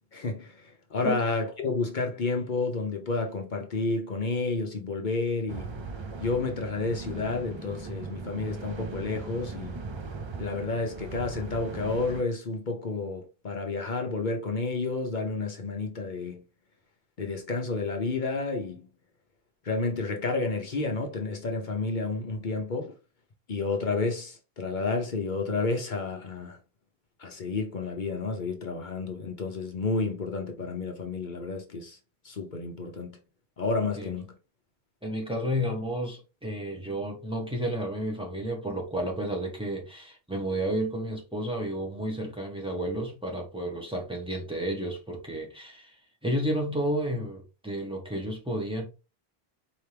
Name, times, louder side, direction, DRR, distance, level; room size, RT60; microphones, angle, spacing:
voice 1, 0.1-5.7 6.2-9.8 10.4-16.4 17.2-18.9 19.6-22.9 23.5-26.6 27.2-32.0 32.2-33.2 33.6-34.3, left 3 dB, 50° left, 0.9 m, -30 dB
sound 1, 5.5-12.2, right 4 dB, 45° right, 0.4 m, -39 dB
voice 2, 35.0-46.0 46.2-48.9, right 1 dB, 5° right, 1.2 m, -31 dB
4.4 x 2.9 x 3.3 m
omnidirectional pair, 1.1 m